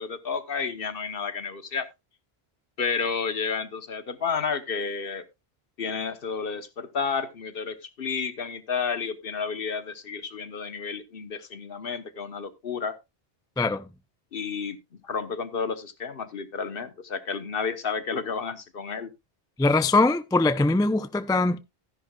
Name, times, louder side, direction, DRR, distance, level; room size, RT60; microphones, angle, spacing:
voice 1, 0.0-1.9 2.8-5.2 5.8-13.0 14.3-14.8 15.0-19.1, left 5 dB, 60° left, 1.2 m, -31 dB
voice 2, 13.6-13.9 19.6-21.6, left 2 dB, 5° left, 0.3 m, -22 dB
13.0 x 10.5 x 2.3 m
omnidirectional pair, 1.1 m